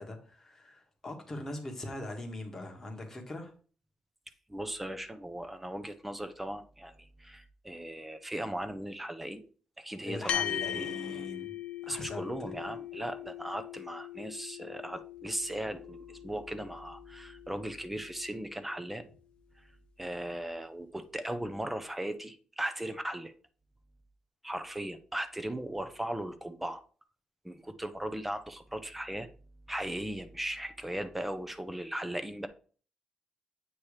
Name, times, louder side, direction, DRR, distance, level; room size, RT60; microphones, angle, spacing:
voice 1, 0.0-3.5 10.0-11.6 11.8-12.3, left 1 dB, 20° left, 1.2 m, -41 dB
voice 2, 4.5-9.4 9.8-11.3 11.9-19.0 20.0-23.3 24.4-26.8 27.4-29.3 29.7-32.5, right 1 dB, 5° right, 0.5 m, -38 dB
sound 1, 10.3-19.0, left 11 dB, 60° left, 0.5 m, -40 dB
8.4 x 2.9 x 4.8 m
wide cardioid pair, 165°, 2 cm